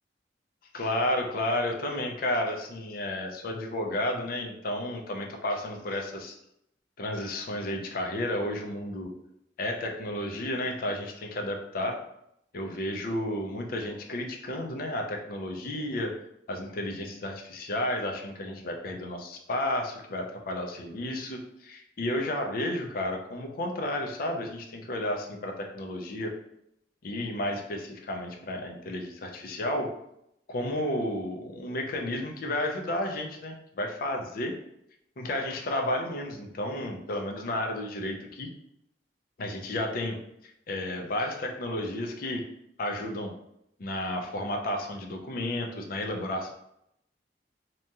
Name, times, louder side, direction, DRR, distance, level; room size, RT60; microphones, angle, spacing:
voice 1, 0.7-6.4 7.0-9.1 9.6-12.0 12.5-16.1 16.5-26.3 27.0-29.9 30.5-34.5 35.2-38.5 39.4-40.2 40.4-42.4 42.8-43.3 43.8-46.5, left 1 dB, 55° left, 3 dB, 0.4 m, -32 dB
2.8 x 2.2 x 2.8 m, 0.78 s
head